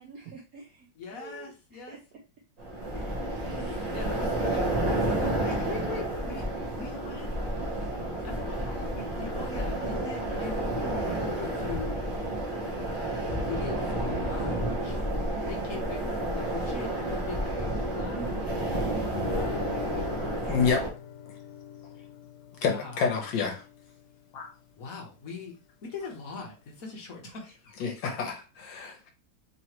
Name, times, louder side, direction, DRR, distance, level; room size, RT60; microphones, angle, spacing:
voice 1, 0.0-2.0 2.9-3.7 4.3-4.7 18.1-18.3, right 4 dB, 70° right, 1 dB, 0.8 m, -45 dB
voice 2, 0.9-2.0 3.7-4.6 5.0-6.5 6.8-7.3 8.2-12.2 12.9-15.0 15.3-20.3 22.6-23.3 24.8-28.1, left 4 dB, 50° left, -1 dB, 1.2 m, -41 dB
sound 1, 2.6-20.9, right 1 dB, 40° right, 0.6 m, -30 dB
Guitar, 19.1-24.2, left 8 dB, 85° left, 1.5 m, -41 dB
voice 3, 20.5-20.8 22.6-23.6 24.3-24.5 27.8-28.3 28.6-29.1, left 6 dB, 70° left, 3 dB, 1.5 m, -28 dB
3.9 x 3.0 x 2.9 m, 0.32 s
omnidirectional pair, 2.2 m